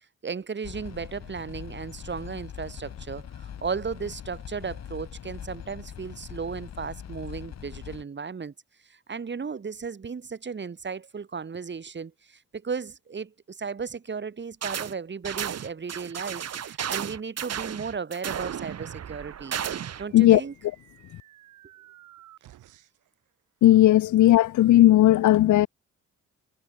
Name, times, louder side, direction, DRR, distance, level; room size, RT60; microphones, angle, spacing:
voice 1, 0.2-8.5 8.8-19.6 20.0-20.5, right 5 dB, 35° right, 5.8 m, -35 dB
sound 1, 0.6-8.0, left 9 dB, 60° left, 5.5 m, -41 dB
sound 2, 14.6-14.9 15.2-20.1, right 9 dB, 55° right, 3.2 m, -33 dB
sound 3, 19.6-23.1, right 14 dB, 80° right, 5.0 m, -54 dB
voice 2, 23.6-25.7, left 14 dB, 75° left, 1.1 m, -16 dB
cardioid pair, 90°, 30 cm